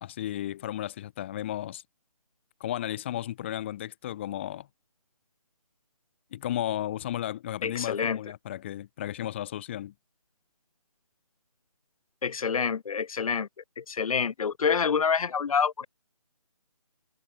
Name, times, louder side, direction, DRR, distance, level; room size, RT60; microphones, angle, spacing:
voice 1, 0.0-1.8 2.6-4.7 6.3-9.9, left 12 dB, 20° left, 1.2 m, -34 dB
voice 2, 7.6-8.2 12.2-13.5 13.8-15.9, left 6 dB, 70° left, 0.4 m, -27 dB
figure-of-eight pair, 160°, 19 cm